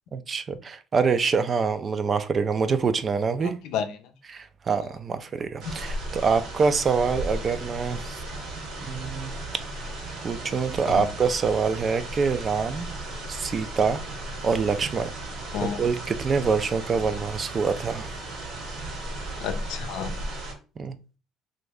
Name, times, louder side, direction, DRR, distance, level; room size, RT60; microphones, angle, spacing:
voice 1, 0.1-3.5 4.3-8.2 8.9-9.3 10.2-12.9 13.3-14.0 14.4-15.1 15.8-18.1 20.8-20.9, right 5 dB, 35° right, 0.3 m, -25 dB
voice 2, 3.4-4.1 10.9-11.1 15.5-15.8 17.1-17.2 19.4-20.1, left 7 dB, 80° left, 0.5 m, -31 dB
sound 1, 5.6-20.5, right 2 dB, 75° right, 1.4 m, -35 dB
3.0 x 2.6 x 3.3 m
cardioid pair, 110°, 0 cm